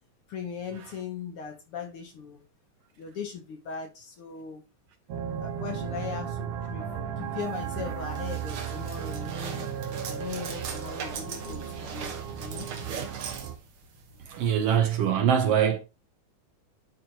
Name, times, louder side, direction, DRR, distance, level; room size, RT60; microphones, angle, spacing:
voice 1, 0.3-2.4 3.0-4.6 5.4-9.7 10.1-12.7, left 6 dB, 65° left, 1.5 m, -39 dB
sound 1, 5.1-13.6, right 8 dB, 90° right, 2.7 m, -35 dB
sound 2, 7.4-14.8, right 6 dB, 55° right, 1.8 m, -40 dB
voice 2, 14.3-15.8, right 8 dB, 70° right, 1.5 m, -23 dB
11.0 x 4.5 x 2.8 m
omnidirectional pair, 3.5 m